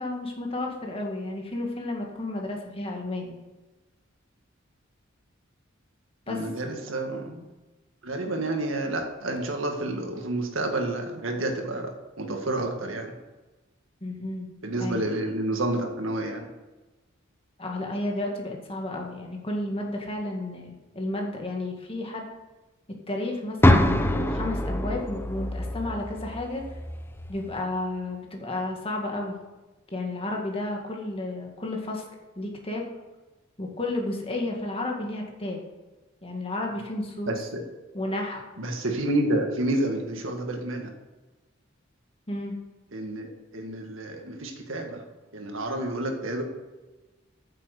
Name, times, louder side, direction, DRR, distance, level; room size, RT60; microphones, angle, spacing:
voice 1, 0.0-3.4 6.3-6.4 14.0-15.1 17.6-22.2 23.1-26.6 27.3-29.4 29.9-32.0 32.4-32.9 33.6-35.6 36.2-37.4 37.9-38.4 42.3-42.6, left 2 dB, 30° left, 1 dB, 1.9 m, -32 dB
voice 2, 6.3-7.5 8.0-13.1 14.6-16.5 37.3-37.6 38.6-40.9 42.9-45.0 45.3-46.4, right 1 dB, 70° right, 3 dB, 1.9 m, -29 dB
sound 1, 23.6-27.6, left 1 dB, 10° left, 0.6 m, -25 dB
8.9 x 7.5 x 6.7 m, 1.2 s
head